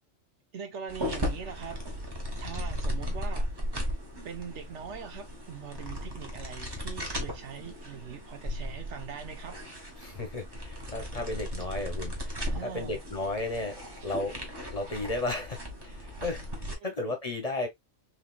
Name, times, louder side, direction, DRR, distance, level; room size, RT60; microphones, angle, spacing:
voice 1, 0.5-1.8 2.4-3.5 4.2-9.6 12.4-13.0, right 7 dB, 75° right, 1.1 m, -42 dB
sound 1, 0.9-16.8, equal, 20° right, 1.0 m, -36 dB
voice 2, 10.0-13.8 14.0-14.5 14.7-17.7, left 2 dB, 35° left, 0.9 m, -34 dB
4.1 x 3.2 x 2.2 m
omnidirectional pair, 1.2 m